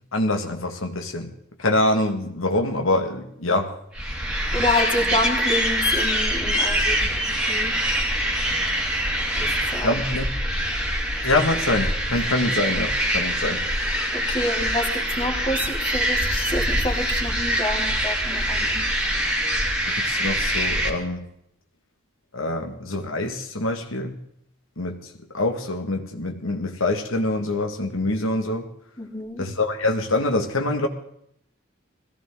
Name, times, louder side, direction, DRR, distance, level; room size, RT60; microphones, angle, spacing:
voice 1, 0.1-1.3 1.6-3.7 9.8-10.3 11.2-13.7 19.9-21.3 22.3-24.2 24.8-28.7 29.4-30.9, left 2 dB, 80° left, 3 dB, 2.0 m, -25 dB
sound 1, 3.9-20.9, equal, 5° right, 2.6 m, -24 dB
voice 2, 4.5-7.1 7.5-7.7 9.4-9.9 14.1-18.9 29.0-29.4, left 1 dB, 25° left, 1 dB, 3.1 m, -28 dB
21.5 x 16.0 x 3.9 m, 0.71 s
head